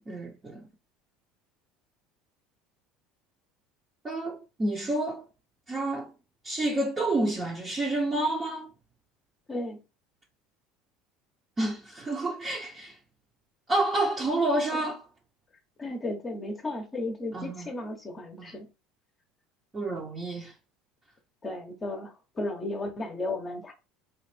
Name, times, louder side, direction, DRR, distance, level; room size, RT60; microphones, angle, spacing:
voice 1, 0.1-0.7 4.0-5.2 5.7-6.1 6.4-8.7 11.6-13.0 13.7-15.1 17.3-17.7 19.7-20.5, right 2 dB, 20° right, 0.8 m, -29 dB
voice 2, 9.5-9.8 15.8-18.7 21.4-23.7, left 2 dB, 25° left, 0.9 m, -34 dB
3.9 x 2.5 x 3.3 m
supercardioid pair, 120°, 0 cm